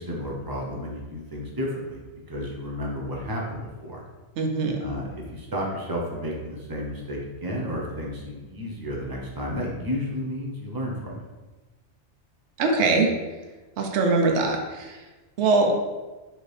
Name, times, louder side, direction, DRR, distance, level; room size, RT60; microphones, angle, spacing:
voice 1, 0.0-4.0 4.8-11.2, equal, 25° right, -2 dB, 0.6 m, -32 dB
voice 2, 4.4-4.8 12.6-13.1 13.8-14.9 15.4-15.7, right 3 dB, 80° right, 2 dB, 0.9 m, -22 dB
4.3 x 2.8 x 3.2 m, 1.2 s
omnidirectional pair, 1.2 m